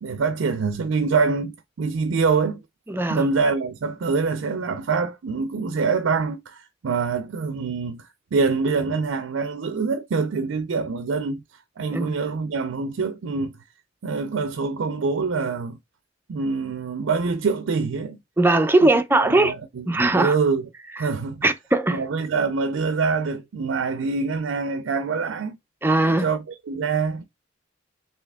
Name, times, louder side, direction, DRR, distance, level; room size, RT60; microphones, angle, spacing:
voice 1, 0.0-2.6 3.1-11.4 11.8-13.5 14.0-15.8 16.3-18.2 18.8-20.6 21.0-21.5 21.9-25.6 26.0-27.2, right 4 dB, 75° right, 0.4 m, -25 dB
voice 2, 2.9-3.2 11.9-12.1 18.4-19.5 19.9-20.4 21.0-21.1 21.4-22.0 25.8-26.3, right 2 dB, 10° right, 0.4 m, -19 dB
3.3 x 2.8 x 3.4 m
head